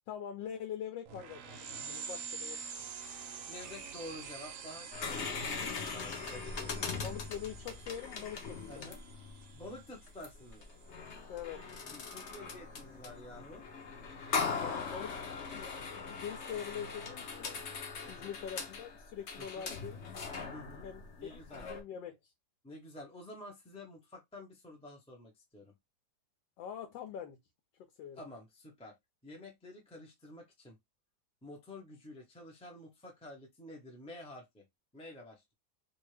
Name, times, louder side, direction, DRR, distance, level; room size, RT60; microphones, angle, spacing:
voice 1, 0.1-2.6 7.0-8.9 11.3-11.6 14.4-15.2 15.5-17.5 18.1-20.0 20.8-21.4 21.7-22.2 26.6-27.4 28.0-28.2, left 9 dB, 90° left, 1.3 m, -43 dB
sound 1, 1.1-11.2, right 5 dB, 70° right, 0.8 m, -47 dB
voice 2, 3.4-7.1 8.7-9.0 9.5-10.6 11.8-13.7 18.0-18.3 19.4-19.7 20.5-20.9 21.2-21.7 22.6-25.7 28.1-29.0 29.2-30.8 31.4-34.6 34.9-35.5, left 1 dB, 5° left, 0.5 m, -50 dB
sound 2, 4.9-21.8, left 5 dB, 60° left, 0.7 m, -40 dB
2.7 x 2.7 x 3.2 m
omnidirectional pair, 1.9 m